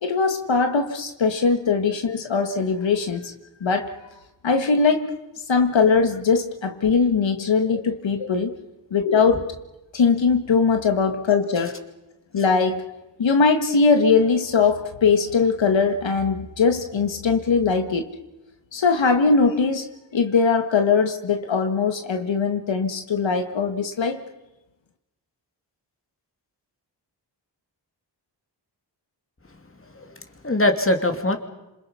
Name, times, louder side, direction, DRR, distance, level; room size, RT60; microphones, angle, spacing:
voice 1, 0.0-3.3 3.6-4.0 4.4-5.2 5.5-8.5 8.9-9.5 9.9-11.8 12.3-12.9 13.2-18.1 18.7-19.9 20.1-24.2, left 5 dB, 80° left, 1.7 m, -21 dB
voice 2, 29.8-31.4, left 1 dB, 30° left, 2.7 m, -23 dB
27.5 x 27.0 x 5.7 m
wide cardioid pair, 95°, 45 cm